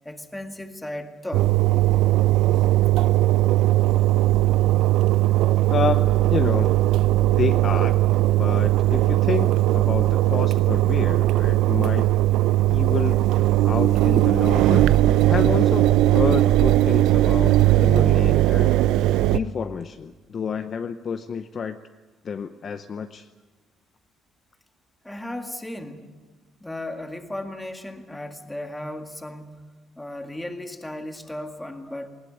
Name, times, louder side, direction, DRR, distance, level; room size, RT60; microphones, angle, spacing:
voice 1, 0.0-1.5 25.0-26.1 26.6-29.6 30.0-32.1, left 1 dB, 5° left, 6 dB, 1.9 m, -35 dB
Engine, 1.3-19.4, right 15 dB, 80° right, 0.7 m, -19 dB
voice 2, 5.7-6.0 6.3-6.7 7.3-12.1 12.7-15.0 15.3-21.8 22.2-23.3, left 6 dB, 35° left, 9 dB, 0.7 m, -29 dB
20.0 x 20.0 x 9.4 m, 1.4 s
cardioid pair, 160°, 0 cm